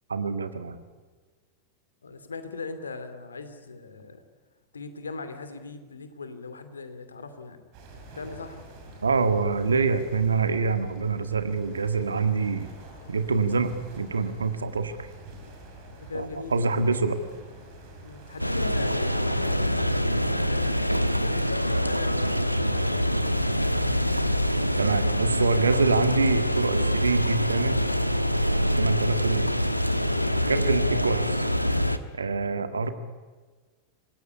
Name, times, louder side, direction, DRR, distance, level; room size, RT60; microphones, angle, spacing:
voice 1, 0.1-0.8 9.0-12.7 13.1-15.0 16.1-17.2 24.8-27.8 28.5-29.5 30.5-31.5 32.1-32.9, right 4 dB, 75° right, 9 dB, 1.9 m, -26 dB
voice 2, 2.0-4.2 4.7-7.7 8.1-8.6 16.0-16.6 18.0-20.7 21.2-23.4 30.4-30.6 32.7-32.8, left 4 dB, 75° left, 10 dB, 2.5 m, -39 dB
sound 1, 7.7-24.0, right 2 dB, 45° right, 6.8 m, -47 dB
sound 2, 18.4-32.0, equal, 90° left, 1.2 m, -25 dB
26.5 x 18.5 x 9.9 m, 1.4 s
figure-of-eight pair, 90°, 0 cm